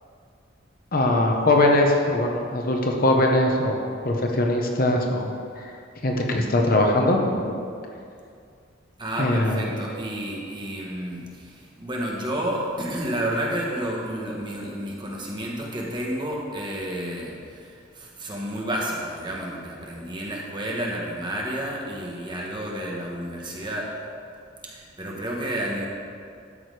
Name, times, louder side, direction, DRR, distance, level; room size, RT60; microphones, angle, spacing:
voice 1, 0.9-3.7 4.0-5.3 6.0-7.5 9.2-9.6, left 1 dB, 50° left, 1 dB, 1.0 m, -21 dB
voice 2, 9.0-24.0 24.6-25.9, right 1 dB, 25° right, -2 dB, 1.5 m, -30 dB
12.5 x 6.4 x 4.9 m, 2.3 s
head